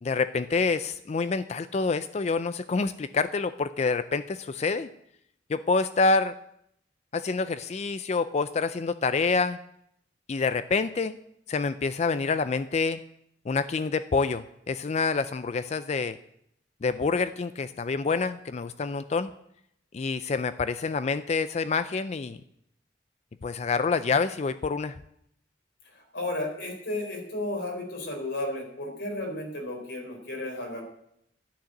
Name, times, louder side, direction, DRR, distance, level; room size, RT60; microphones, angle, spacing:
voice 1, 0.0-4.9 5.5-6.4 7.1-9.6 10.3-11.2 11.5-13.0 13.5-16.2 16.8-19.3 19.9-22.4 23.4-25.0, left 4 dB, 35° left, 12 dB, 0.4 m, -27 dB
voice 2, 26.1-30.8, left 1 dB, 75° left, 1 dB, 4.2 m, -33 dB
11.5 x 6.5 x 9.0 m, 0.75 s
head